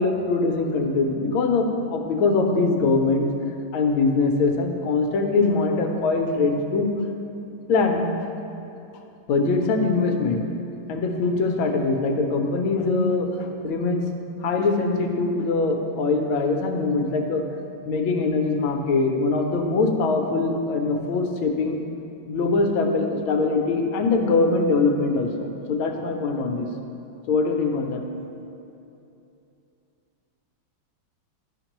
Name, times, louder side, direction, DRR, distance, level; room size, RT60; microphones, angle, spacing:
voice 1, 0.0-6.9 7.7-8.1 9.3-10.4 10.9-14.0 14.4-17.4 17.9-21.8 22.3-26.7 27.3-28.0, left 3 dB, 75° left, 3 dB, 1.5 m, -22 dB
12.0 x 5.8 x 3.0 m, 2.7 s
omnidirectional pair, 2.3 m